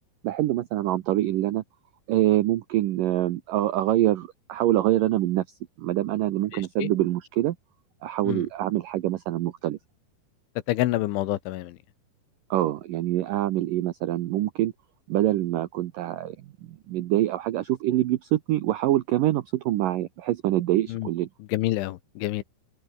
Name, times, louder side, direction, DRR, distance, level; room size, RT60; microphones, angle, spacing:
voice 1, 0.2-1.6 2.1-5.4 5.8-7.6 8.0-9.8 12.5-14.7 15.1-16.4 16.7-21.3, right 14 dB, 85° right, 1.9 m, -25 dB
voice 2, 10.7-11.8 20.9-21.1 21.5-22.4, left 16 dB, 90° left, 3.6 m, -27 dB
open air
omnidirectional pair, 5.3 m